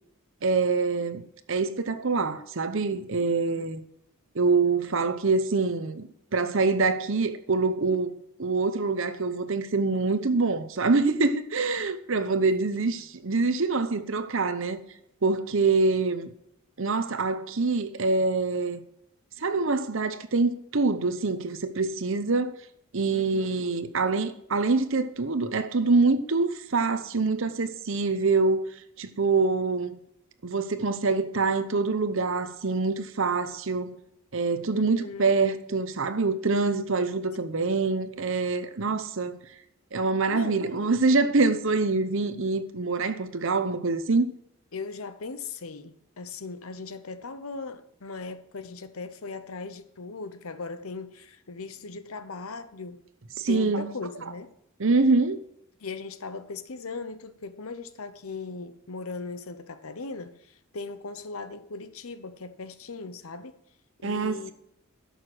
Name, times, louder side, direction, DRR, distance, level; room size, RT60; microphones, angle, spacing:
voice 1, 0.4-3.8 4.3-14.8 15.2-16.3 16.8-18.8 19.4-22.6 22.9-28.6 29.0-30.0 30.4-34.0 34.3-39.4 39.9-44.3 53.4-53.9 54.8-55.4 64.0-64.5, right 3 dB, 60° right, 0.8 m, -25 dB
voice 2, 3.4-3.7 23.1-23.7 34.7-35.3 37.3-37.7 40.3-41.3 44.7-53.0 53.5-54.5 55.8-63.6 64.0-64.5, left 4 dB, 75° left, 0.9 m, -39 dB
11.5 x 6.6 x 6.1 m
head